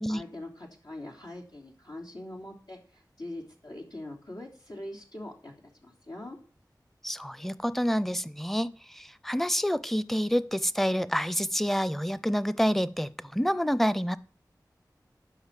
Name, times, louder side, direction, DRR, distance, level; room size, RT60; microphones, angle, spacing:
voice 1, 0.1-5.5 5.8-6.4, left 1 dB, 80° left, 3.2 m, -42 dB
voice 2, 7.0-14.2, equal, 5° left, 0.6 m, -28 dB
11.5 x 5.2 x 7.5 m
wide cardioid pair, 50°, 7 cm